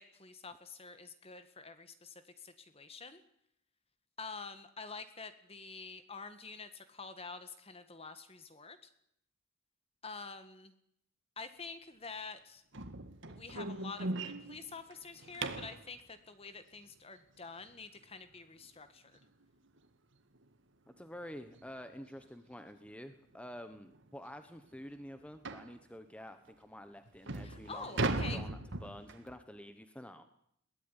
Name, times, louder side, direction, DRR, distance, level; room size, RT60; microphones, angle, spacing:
voice 1, 0.0-3.2 4.2-8.8 10.0-10.7 11.4-12.6 13.3-19.2 27.4-28.4, left 4 dB, 25° left, 10 dB, 1.6 m, -47 dB
sound 1, 12.7-15.8 18.6-18.7 19.2-19.4 19.8-19.9 20.4-20.5 21.5-21.7 22.1-22.2 22.9-23.0 23.3-23.4 23.9-24.0 25.4-25.7 26.5-26.6 27.1-29.3, right 2 dB, 55° right, 1.8 m, -38 dB
voice 2, 20.9-30.3, equal, 5° left, 9 dB, 1.2 m, -49 dB
22.0 x 18.0 x 9.9 m, 0.71 s
head